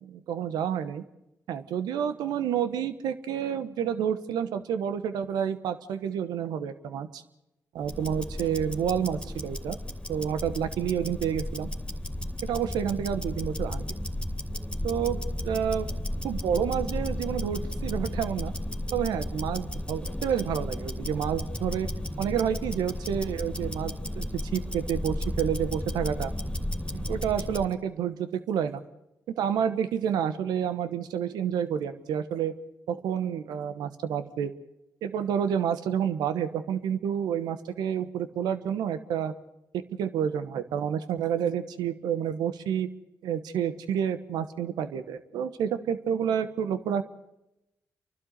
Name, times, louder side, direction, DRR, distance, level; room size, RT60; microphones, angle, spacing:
voice 1, 0.0-1.0 1.5-7.2 7.7-9.8 10.1-11.7 12.4-13.8 14.8-15.9 16.2-18.5 18.9-21.9 22.2-26.3 26.9-28.8 29.3-32.5 32.9-34.5 35.0-39.3 39.7-42.9 43.2-47.0, right 8 dB, 85° right, 11 dB, 1.1 m, -29 dB
Tick-tock, 7.8-27.7, left 1 dB, 10° left, 3.0 m, -34 dB
29.0 x 12.0 x 8.1 m, 0.91 s
supercardioid pair, 45°, 7 cm